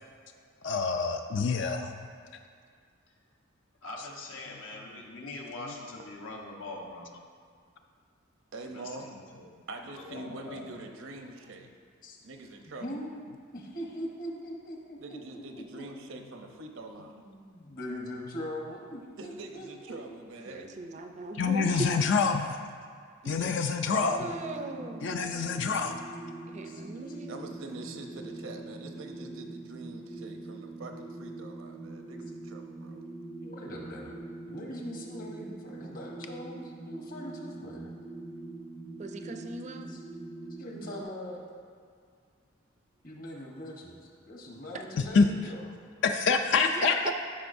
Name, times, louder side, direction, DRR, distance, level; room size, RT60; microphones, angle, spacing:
voice 1, 0.6-2.1 21.4-22.6 23.3-24.4 25.0-26.0 45.1-45.3 46.0-47.0, left 5 dB, 60° left, 6 dB, 0.4 m, -26 dB
voice 2, 3.8-7.1 8.6-9.5 9.9-10.7, left 2 dB, 80° left, -1 dB, 1.1 m, -43 dB
voice 3, 8.5-9.1 9.7-11.7 12.2-13.0 15.0-17.2 19.2-20.7 23.2-24.6 27.3-33.0 43.5-43.6, right 2 dB, 75° right, 4 dB, 0.7 m, -44 dB
voice 4, 13.5-15.9 17.1-20.0 26.6-26.8 33.4-34.2 34.5-37.9 39.9-40.0 40.6-41.4 43.0-45.7, equal, 45° left, -1 dB, 1.1 m, -41 dB
voice 5, 20.5-21.9 24.2-25.1 26.5-27.4 39.0-40.0 46.6-46.9, right 3 dB, 35° right, 5 dB, 0.4 m, -39 dB
sound 1, 24.0-41.0, right 2 dB, 15° left, 0.6 m, -43 dB
12.5 x 5.2 x 2.6 m, 2.2 s
head